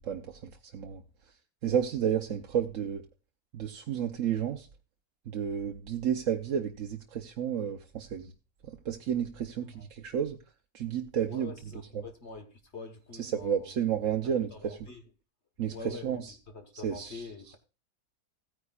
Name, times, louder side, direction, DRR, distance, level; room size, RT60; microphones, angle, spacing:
voice 1, 0.0-1.4 1.6-3.0 3.5-4.7 5.3-8.3 8.6-10.4 10.7-11.5 11.9-12.1 13.2-14.8 15.6-16.3 16.8-17.3, right 8 dB, 60° right, 1.1 m, -32 dB
voice 2, 11.3-13.7 14.5-15.0 15.7-16.2 16.5-17.6, left 4 dB, 45° left, 1.6 m, -45 dB
16.0 x 9.6 x 2.4 m
omnidirectional pair, 1.6 m